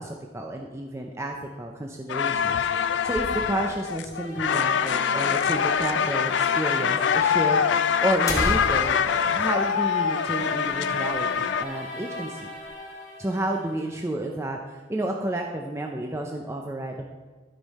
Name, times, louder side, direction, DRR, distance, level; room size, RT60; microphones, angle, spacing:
voice 1, 0.0-12.5 13.2-17.1, right 1 dB, 15° right, 2 dB, 0.5 m, -31 dB
sound 1, 2.1-11.6, left 7 dB, 70° left, 0.4 m, -24 dB
sound 2, 2.1-3.9 4.2-4.3 4.5-4.6 5.3-5.4 6.3-6.4 6.7-6.8 7.6-7.7 8.0-10.6 11.0-11.1 11.5-11.8 12.2-12.7, left 1 dB, 15° left, 1.2 m, -34 dB
sound 3, 4.1-14.1, left 1 dB, 35° left, 2.8 m, -39 dB
13.0 x 5.4 x 4.2 m, 1.4 s
head